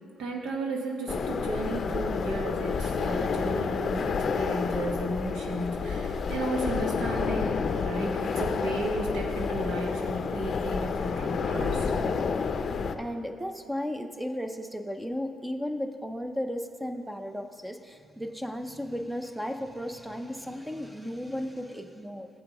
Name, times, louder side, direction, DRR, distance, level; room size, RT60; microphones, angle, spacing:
voice 1, 0.2-11.9, right 1 dB, 85° right, 1 dB, 1.2 m, -34 dB
sound 1, 1.1-12.9, left 5 dB, 50° left, 0.5 m, -29 dB
voice 2, 13.0-22.3, equal, 5° right, 7 dB, 0.6 m, -35 dB
13.5 x 7.6 x 3.0 m, 2.4 s
cardioid pair, 90°, 0 cm